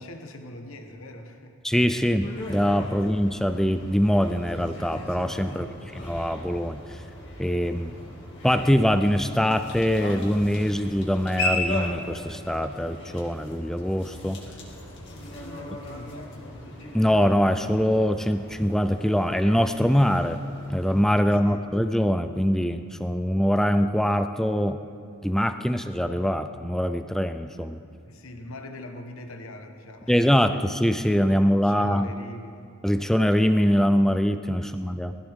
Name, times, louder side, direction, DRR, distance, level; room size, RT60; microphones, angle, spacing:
voice 1, 0.0-1.6 2.9-3.2 7.7-7.9 14.9-16.7 21.2-21.6 25.7-25.8 28.0-30.2 31.4-32.7 34.6-35.0, left 1 dB, 80° left, 5 dB, 1.2 m, -43 dB
voice 2, 1.6-7.0 7.4-7.9 8.4-14.4 16.9-20.4 20.7-24.8 25.2-27.8 30.1-32.1 32.8-35.1, equal, ahead, 9 dB, 0.3 m, -23 dB
sound 1, 2.2-21.0, left 1 dB, 55° left, 2.3 m, -37 dB
19.5 x 14.5 x 3.6 m, 2.3 s
head